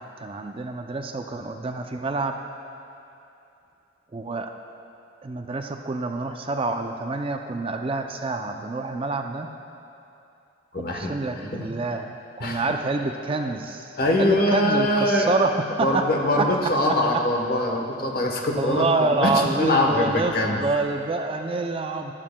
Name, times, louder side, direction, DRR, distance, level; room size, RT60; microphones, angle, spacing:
voice 1, 0.0-2.4 4.1-4.5 5.2-9.5 11.0-13.9 14.2-16.0 16.4-16.5 18.6-22.1, right 3 dB, 30° right, 5 dB, 0.4 m, -27 dB
voice 2, 10.7-11.7 12.4-12.8 14.0-15.4 15.8-20.6, left 1 dB, 50° left, 2 dB, 1.0 m, -23 dB
14.5 x 12.0 x 2.2 m, 2.8 s
head